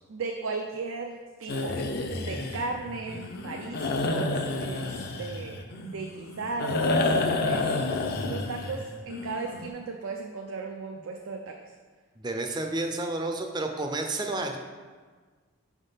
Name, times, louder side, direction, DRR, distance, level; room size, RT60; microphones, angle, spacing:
voice 1, 0.1-1.8 2.2-7.1 7.4-7.7 8.3-11.6, right 4 dB, 70° right, 3 dB, 0.5 m, -36 dB
sound 1, 1.5-9.7, left 2 dB, 50° left, 0.5 m, -30 dB
voice 2, 12.2-14.6, right 2 dB, 20° right, 4 dB, 0.5 m, -30 dB
6.1 x 3.6 x 5.5 m, 1.5 s
head